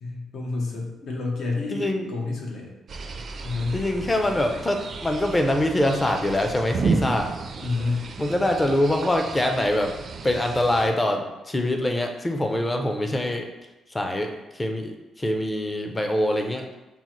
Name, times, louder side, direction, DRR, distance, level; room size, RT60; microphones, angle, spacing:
voice 1, 0.0-2.7 3.4-3.8 7.6-8.1, left 3 dB, 70° left, -1 dB, 0.8 m, -29 dB
voice 2, 1.7-2.1 3.7-7.3 8.2-10.0 10.2-13.5 13.9-16.7, left 1 dB, 20° left, 4 dB, 0.5 m, -24 dB
sound 1, 2.9-10.9, right 4 dB, 50° right, 0.4 m, -32 dB
5.4 x 2.1 x 3.0 m, 1.0 s
cardioid pair, 90°, 0 cm